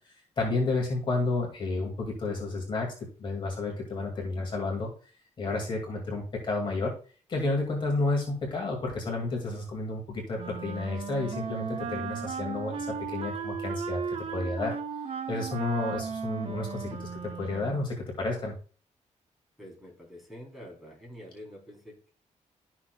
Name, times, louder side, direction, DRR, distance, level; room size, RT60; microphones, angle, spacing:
voice 1, 0.4-4.9 5.4-6.9 7.3-14.7 15.3-17.1 17.4-18.5, left 3 dB, 40° left, 0 dB, 2.4 m, -31 dB
Wind instrument woodwind instrument, 10.4-17.9, right 6 dB, 50° right, 0.8 m, -36 dB
voice 2, 19.6-22.1, equal, ahead, -2 dB, 3.6 m, -47 dB
12.5 x 6.2 x 2.4 m, 0.39 s
wide cardioid pair, 170°, 13 cm